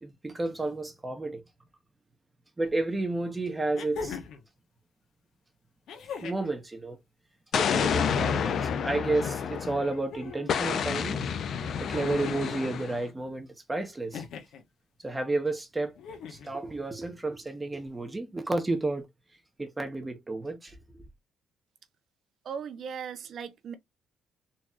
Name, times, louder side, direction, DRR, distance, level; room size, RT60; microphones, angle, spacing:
voice 1, 0.0-1.4 2.6-4.2 6.2-7.0 7.6-11.2 11.8-14.2 15.0-16.0 16.3-19.0 19.6-20.7, right 2 dB, 15° right, 1.1 m, -31 dB
sound 1, 2.7-2.8 3.7-4.5 5.9-6.5 7.8-8.5 9.8-10.6 11.9-12.6 14.1-14.6 16.0-16.5 17.9-18.0, left 6 dB, 80° left, 1.2 m, -41 dB
Explosion, 7.5-10.0 10.5-13.0, left 7 dB, 65° left, 0.6 m, -29 dB
voice 2, 22.4-23.8, right 7 dB, 65° right, 0.9 m, -38 dB
4.1 x 3.2 x 2.4 m
cardioid pair, 90°, 0 cm